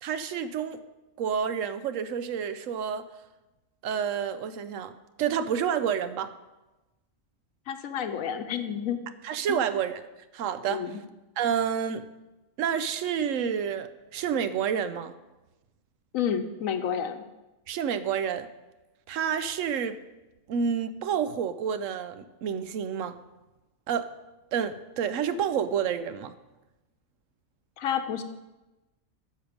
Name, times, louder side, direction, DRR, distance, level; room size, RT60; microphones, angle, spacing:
voice 1, 0.0-0.8 1.2-3.1 3.8-4.9 5.2-6.3 9.2-10.0 10.3-10.9 11.4-12.1 12.6-15.2 17.7-18.5 19.1-20.0 20.5-23.2 23.9-24.1 24.5-26.4, right 7 dB, 75° right, 12 dB, 1.0 m, -29 dB
voice 2, 7.7-9.0 9.5-9.6 10.7-11.0 16.1-17.2 27.8-28.2, left 8 dB, 85° left, 9 dB, 1.2 m, -30 dB
10.0 x 6.5 x 5.1 m, 1.1 s
omnidirectional pair, 1.4 m